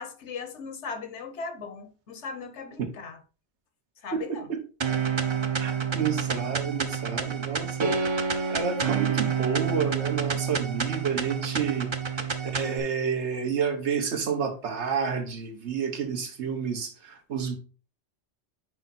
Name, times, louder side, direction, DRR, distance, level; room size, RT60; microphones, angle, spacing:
voice 1, 0.0-3.2 4.0-4.5, left 5 dB, 80° left, 1.2 m, -38 dB
voice 2, 4.1-4.6 5.6-8.0 8.5-11.9 12.5-17.6, right 6 dB, 75° right, 1.3 m, -29 dB
sound 1, 4.8-12.8, right 6 dB, 35° right, 0.5 m, -28 dB
5.5 x 4.6 x 4.1 m
omnidirectional pair, 1.2 m